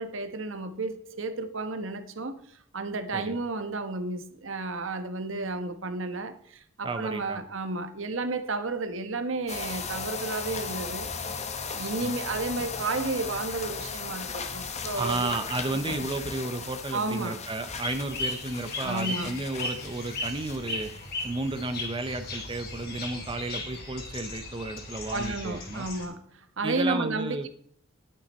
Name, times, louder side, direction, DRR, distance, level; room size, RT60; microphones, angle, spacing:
voice 1, 0.0-11.1 11.7-15.3 15.6-15.8 16.9-17.4 18.8-19.4 25.1-27.5, right 3 dB, 65° right, 1.2 m, -32 dB
voice 2, 6.8-7.4 12.0-12.1 15.0-20.9 21.2-25.9 26.6-27.5, right 2 dB, 25° right, 0.7 m, -33 dB
sound 1, 9.5-21.8 22.1-22.4 22.8-22.9, left 5 dB, 35° left, 1.1 m, -37 dB
sound 2, 17.7-26.0, left 2 dB, 50° left, 3.1 m, -37 dB
11.5 x 8.8 x 4.3 m
head